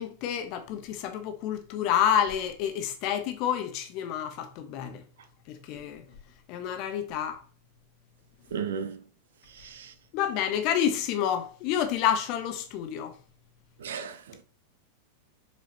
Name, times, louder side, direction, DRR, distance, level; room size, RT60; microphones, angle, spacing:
voice 1, 0.0-5.0 5.5-6.0 6.5-7.4 10.1-13.1, left 9 dB, 40° left, 1.1 m, -29 dB
voice 2, 8.5-9.0 9.5-9.9 13.8-14.4, right 7 dB, 60° right, 0.8 m, -35 dB
6.6 x 4.9 x 2.9 m
figure-of-eight pair, 90°, 0 cm